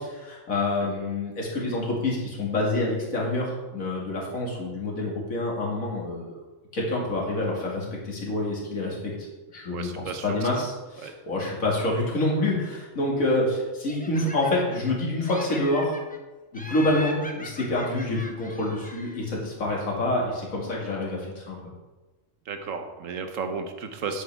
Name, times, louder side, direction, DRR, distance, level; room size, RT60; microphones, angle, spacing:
voice 1, 0.0-6.4 6.7-9.3 9.5-15.9 16.5-21.7, left 2 dB, 90° left, -3 dB, 2.6 m, -27 dB
voice 2, 9.7-10.3 10.5-10.6 11.0-11.1 22.5-24.2, right 5 dB, 75° right, 6 dB, 1.3 m, -34 dB
Laughter, 13.9-14.9 15.2-16.2 16.5-19.3, left 2 dB, 10° left, 0.5 m, -40 dB
10.0 x 8.0 x 3.5 m, 1.2 s
omnidirectional pair, 1.4 m